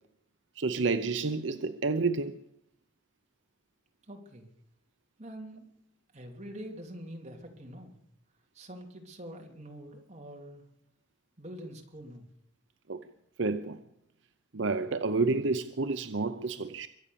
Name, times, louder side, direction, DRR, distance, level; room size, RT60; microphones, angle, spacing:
voice 1, 0.6-2.4 12.9-13.0 13.4-13.8 14.5-16.9, right 3 dB, 75° right, 0.8 m, -29 dB
voice 2, 4.1-4.5 5.2-5.7 6.1-8.0 8.5-10.6 11.4-12.3, equal, 35° right, 3.0 m, -45 dB
23.5 x 8.6 x 7.0 m
head